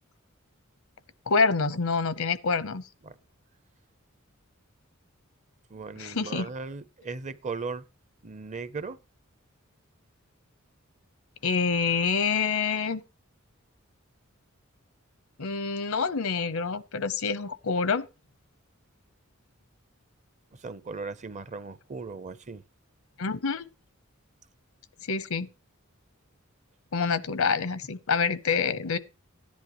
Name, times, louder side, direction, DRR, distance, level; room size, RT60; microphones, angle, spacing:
voice 1, 1.3-2.8 6.0-6.5 11.4-13.0 15.4-18.0 23.2-23.6 25.1-25.5 26.9-29.0, left 5 dB, 85° left, 0.8 m, -27 dB
voice 2, 5.7-7.8 8.2-9.0 20.5-22.6, right 4 dB, 35° right, 0.6 m, -37 dB
15.5 x 10.5 x 3.0 m
head